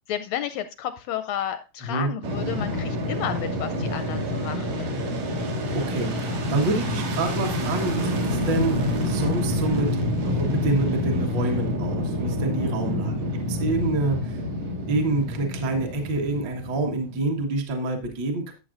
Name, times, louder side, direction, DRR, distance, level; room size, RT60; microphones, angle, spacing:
voice 1, 0.1-5.0 12.8-13.2, left 10 dB, 80° left, 10 dB, 1.6 m, -32 dB
Fixed-wing aircraft airplane, 2.2-17.4, left 1 dB, 80° right, 3.3 m, -27 dB
voice 2, 5.7-9.9 10.2-13.1 13.5-14.4 14.9-18.5, right 2 dB, 50° right, 2 dB, 1.7 m, -27 dB
13.5 x 7.0 x 2.5 m, 0.29 s
omnidirectional pair, 3.4 m